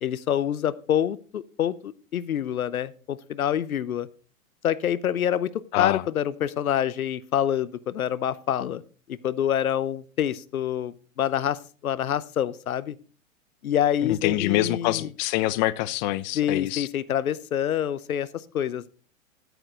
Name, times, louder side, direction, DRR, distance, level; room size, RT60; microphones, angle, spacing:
voice 1, 0.0-4.1 4.6-8.8 9.1-13.0 13.6-15.1 16.3-18.9, left 10 dB, 85° left, 0.8 m, -26 dB
voice 2, 14.0-16.9, left 16 dB, 35° left, 0.6 m, -25 dB
9.9 x 9.2 x 3.9 m
hypercardioid pair, 120°, 41 cm